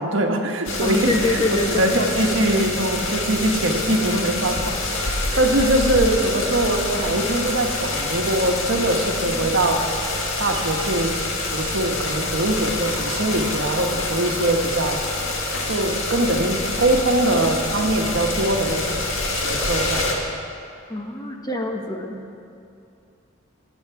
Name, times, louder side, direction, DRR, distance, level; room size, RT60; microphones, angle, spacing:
voice 1, 0.0-9.8 10.4-11.1 11.5-15.0 15.7-19.0 19.3-20.1 22.1-22.3, right 1 dB, 70° right, 2 dB, 1.3 m, -22 dB
sound 1, 0.7-20.1, left 2 dB, 80° left, 1.8 m, -26 dB
voice 2, 0.8-1.9 5.3-5.4 20.9-22.1, left 2 dB, 20° left, 2 dB, 1.0 m, -25 dB
19.0 x 8.3 x 4.7 m, 2.5 s
head